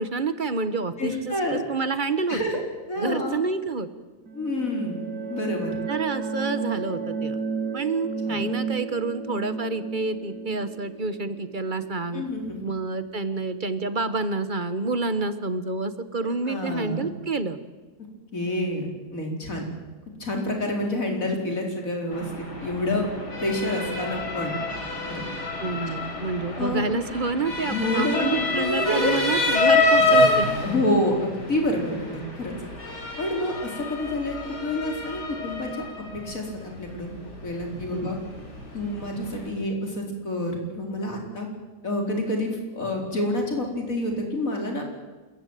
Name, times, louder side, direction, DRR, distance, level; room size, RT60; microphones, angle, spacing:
voice 1, 0.0-2.4 3.0-3.9 5.9-7.4 7.7-12.2 12.6-17.6 25.6-30.5 37.9-38.1, right 3 dB, 30° right, 12 dB, 1.3 m, -28 dB
voice 2, 1.0-1.6 2.3-2.6 2.9-3.4 4.3-5.0 5.3-5.7 8.3-8.4 12.1-12.6 16.2-17.1 18.3-19.6 20.2-22.3 22.6-23.1 23.4-24.5 25.1-25.2 25.9-26.0 26.6-26.9 27.6-29.3 30.6-32.5 33.2-35.8 36.2-37.1 37.4-38.2 38.7-41.5 41.8-44.9, left 1 dB, 55° left, 1 dB, 4.9 m, -28 dB
sound 1, 4.3-12.8, right 4 dB, 80° right, 2.4 m, -32 dB
Motor vehicle (road) / Siren, 22.1-39.5, left 2 dB, 85° left, 4.9 m, -27 dB
28.0 x 14.5 x 9.2 m, 1.2 s
omnidirectional pair, 1.7 m